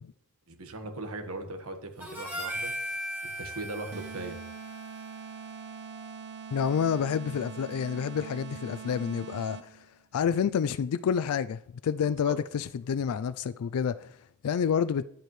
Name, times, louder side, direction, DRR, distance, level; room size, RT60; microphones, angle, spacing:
voice 1, 0.5-2.7 3.2-4.4 12.0-12.4, right 2 dB, 75° right, 1.4 m, -39 dB
Harmonica, 2.0-6.5, equal, 10° right, 2.0 m, -39 dB
sound 1, 3.9-9.9, right 6 dB, 55° right, 0.7 m, -43 dB
voice 2, 6.5-9.8 10.1-14.1 14.4-15.0, left 7 dB, 85° left, 0.4 m, -28 dB
10.0 x 9.1 x 3.2 m
head